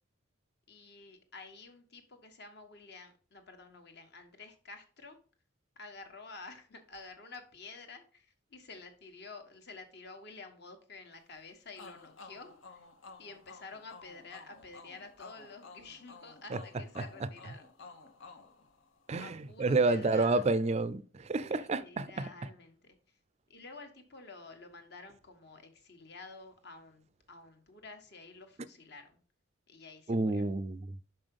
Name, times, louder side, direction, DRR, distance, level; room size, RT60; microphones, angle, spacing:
voice 1, 0.7-5.2 5.7-12.8 13.2-17.7 19.2-20.5 21.4-23.2 23.5-29.2 29.7-30.5, left 3 dB, 55° left, 1.3 m, -50 dB
sound 1, 11.8-19.3, left 4 dB, 80° left, 1.1 m, -53 dB
voice 2, 19.1-22.3 30.1-30.9, right 3 dB, 35° right, 0.4 m, -29 dB
5.7 x 5.3 x 5.3 m
head